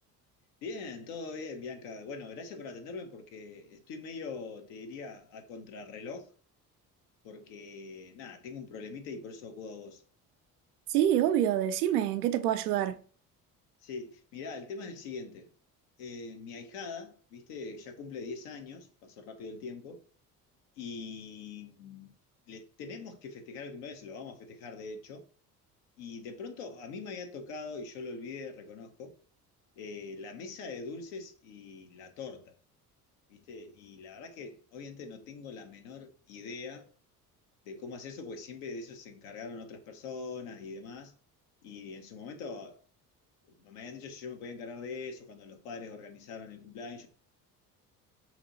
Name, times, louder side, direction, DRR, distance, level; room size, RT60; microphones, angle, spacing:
voice 1, 0.6-6.3 7.2-10.0 13.8-15.5 16.0-20.0 20.8-22.1 22.5-25.2 26.0-29.1 29.8-32.5 33.3-36.9 37.6-41.1 41.6-42.8 43.6-47.1, left 4 dB, 75° left, 1.0 m, -43 dB
voice 2, 10.9-13.0, right 11 dB, 80° right, 0.6 m, -26 dB
3.2 x 3.0 x 3.9 m
hypercardioid pair, 55°, 45 cm